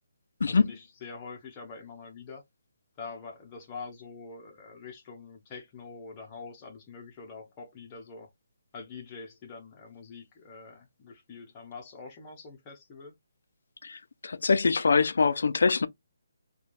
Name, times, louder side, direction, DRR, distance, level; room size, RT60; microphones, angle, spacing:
voice 1, 0.5-2.4 3.0-8.3 8.7-13.1, left 4 dB, 15° left, 0.7 m, -45 dB
voice 2, 13.8-15.9, left 4 dB, 60° left, 0.4 m, -24 dB
3.2 x 2.3 x 2.5 m
hypercardioid pair, 175°, 0 cm